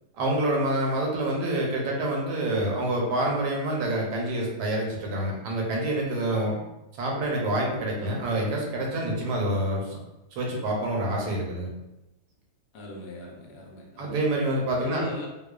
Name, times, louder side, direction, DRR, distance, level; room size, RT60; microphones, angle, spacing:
voice 1, 0.1-6.6 7.0-10.0 10.4-11.7 14.0-15.1, right 1 dB, 80° right, -1 dB, 1.2 m, -27 dB
voice 2, 12.7-14.2 14.7-15.3, left 1 dB, 80° left, -1 dB, 1.2 m, -40 dB
2.9 x 2.1 x 2.2 m, 0.95 s
omnidirectional pair, 1.8 m